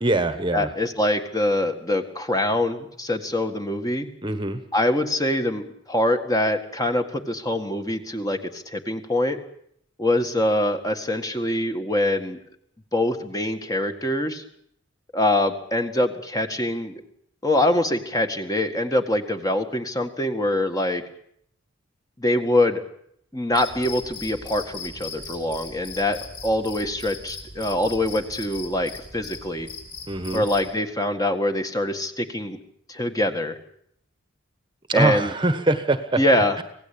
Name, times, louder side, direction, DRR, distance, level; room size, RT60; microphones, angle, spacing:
voice 1, 0.0-0.7 4.2-4.6 30.1-30.4 34.9-36.2, right 2 dB, 25° right, 10 dB, 1.3 m, -23 dB
voice 2, 0.5-4.1 4.7-9.4 10.0-12.4 12.9-14.4 15.1-16.9 17.4-21.0 22.2-22.8 23.3-29.7 30.3-32.6 32.9-33.6 34.9-35.3 36.2-36.6, left 1 dB, 20° left, 6 dB, 1.8 m, -24 dB
Cricket, 23.5-30.7, left 4 dB, 45° left, 6.6 m, -39 dB
25.5 x 17.5 x 8.7 m, 0.70 s
head